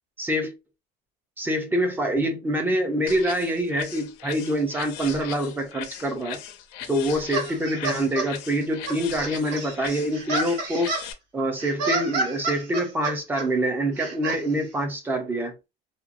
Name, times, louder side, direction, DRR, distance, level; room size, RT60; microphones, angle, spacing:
voice 1, 0.2-0.5 1.4-6.4 6.9-10.9 11.3-15.5, right 1 dB, 10° right, 0.5 m, -25 dB
sound 1, 3.1-11.1, left 9 dB, 75° left, 0.6 m, -39 dB
sound 2, 7.3-8.3 8.9-11.1 11.6-13.5 14.0-14.4, right 3 dB, 90° right, 1.4 m, -29 dB
2.9 x 2.2 x 2.4 m
cardioid pair, 180°, 20 cm